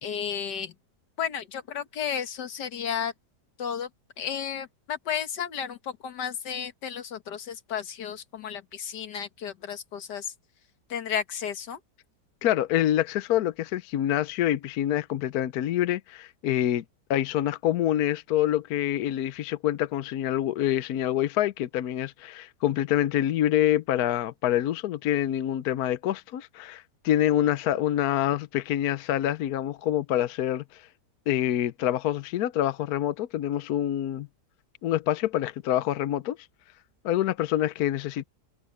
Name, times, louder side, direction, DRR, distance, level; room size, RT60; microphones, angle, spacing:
voice 1, 0.0-0.7 1.2-3.1 3.6-3.9 4.2-10.3 10.9-11.8, left 8 dB, 85° left, 1.9 m, -33 dB
voice 2, 12.4-16.8 17.1-30.8 31.3-34.3 34.8-36.4 37.0-38.2, left 12 dB, 70° left, 1.2 m, -26 dB
omnidirectional pair, 1.8 m